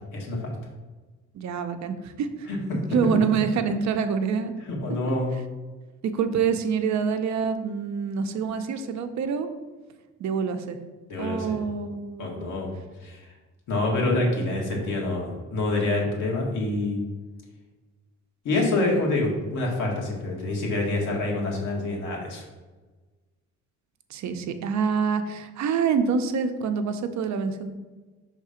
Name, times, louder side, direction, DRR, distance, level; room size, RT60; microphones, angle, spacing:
voice 1, 0.1-0.5 2.5-2.6 4.7-5.3 11.1-11.5 12.2-12.7 13.0-13.2 13.7-17.0 18.4-22.4, left 2 dB, 85° left, -2 dB, 1.7 m, -26 dB
voice 2, 1.3-2.5 2.9-4.5 6.0-9.5 10.2-10.8 11.2-12.6 24.1-27.7, right 6 dB, 65° right, 8 dB, 0.7 m, -26 dB
5.5 x 3.6 x 5.0 m, 1.3 s
cardioid pair, 90°, 30 cm